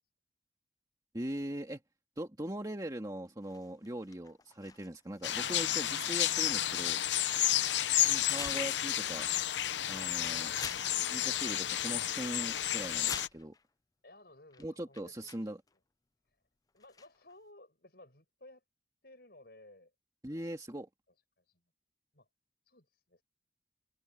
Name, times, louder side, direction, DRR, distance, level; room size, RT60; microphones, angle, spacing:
voice 1, 1.1-1.8 2.2-7.0 8.0-9.3 9.9-10.5 11.1-13.6 14.6-15.6 20.2-20.9, right 1 dB, 20° right, 1.9 m, -40 dB
sound 1, 3.4-7.3 8.2-8.9 9.3-9.4 10.0-10.1 10.5-11.2 11.5-11.6 11.9-12.3 12.8-13.6 14.5-14.6 14.9-15.7 16.8-17.3, left 6 dB, 20° left, 0.4 m, -47 dB
sound 2, 5.2-13.3, left 12 dB, 85° left, 0.8 m, -31 dB
voice 2, 14.0-15.5 16.3-16.4 16.7-18.6 19.0-19.9 20.3-20.4 21.4-21.6 22.1-22.3 22.6-23.2, left 2 dB, 60° left, 7.5 m, -58 dB
head